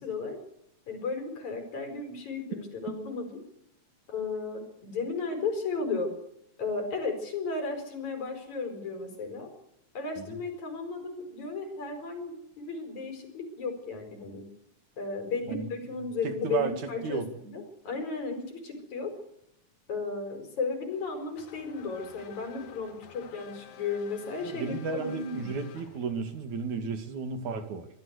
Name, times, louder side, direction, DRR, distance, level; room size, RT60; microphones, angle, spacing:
voice 1, 0.0-0.4 0.9-3.4 4.1-6.1 6.6-9.5 9.9-14.5 15.0-19.1 19.9-25.5, left 4 dB, 65° left, 6 dB, 6.0 m, -34 dB
voice 2, 16.2-17.3 24.4-27.9, right 5 dB, 70° right, 8 dB, 3.6 m, -33 dB
Race car auto racing / Accelerating revving vroom, 20.9-26.4, left 8 dB, 90° left, 3.1 m, -51 dB
25.0 x 15.5 x 8.1 m, 0.76 s
omnidirectional pair, 3.5 m